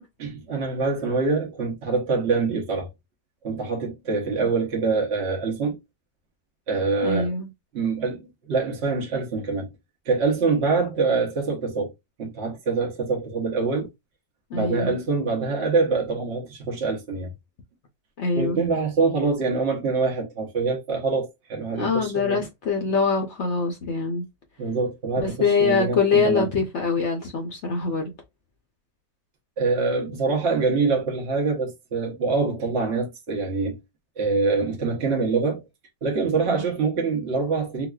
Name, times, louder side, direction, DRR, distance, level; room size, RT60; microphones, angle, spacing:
voice 1, 0.2-2.9 3.4-5.8 6.7-7.3 7.7-9.7 10.1-11.9 12.2-13.9 14.5-17.3 18.4-22.4 24.6-26.5 29.6-33.8 34.2-35.6 36.0-37.9, right 4 dB, 50° right, 0.8 m, -25 dB
voice 2, 7.0-7.5 14.5-15.0 18.2-18.6 21.7-24.2 25.2-28.1 36.5-36.6, left 4 dB, 60° left, 0.7 m, -24 dB
3.9 x 2.3 x 2.3 m
omnidirectional pair, 1.8 m